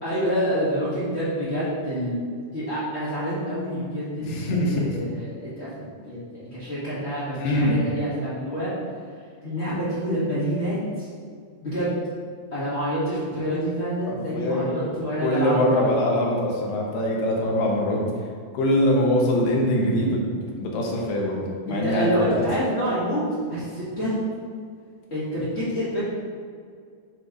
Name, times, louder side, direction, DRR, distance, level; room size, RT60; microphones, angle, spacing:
voice 1, 0.0-2.1 2.5-8.7 9.4-11.1 11.6-11.9 12.5-15.9 21.7-23.2 23.5-24.1 25.1-26.0, equal, 35° left, -11 dB, 1.1 m, -27 dB
voice 2, 4.2-4.9 7.4-7.8 14.1-14.7 15.2-18.0 18.5-20.2 20.6-21.4 21.7-22.4, left 1 dB, 80° left, -2 dB, 2.8 m, -23 dB
9.5 x 3.2 x 3.9 m, 2.1 s
omnidirectional pair, 3.9 m